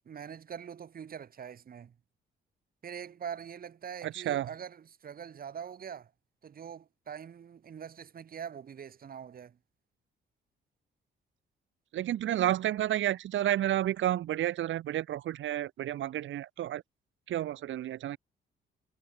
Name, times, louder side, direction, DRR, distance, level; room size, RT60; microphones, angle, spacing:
voice 1, 0.0-1.9 2.8-6.1 6.4-9.6, right 8 dB, 45° right, 1.7 m, -43 dB
voice 2, 4.0-4.5 11.9-16.8 17.3-18.2, right 12 dB, 75° right, 1.8 m, -31 dB
cardioid pair, 90°, 20 cm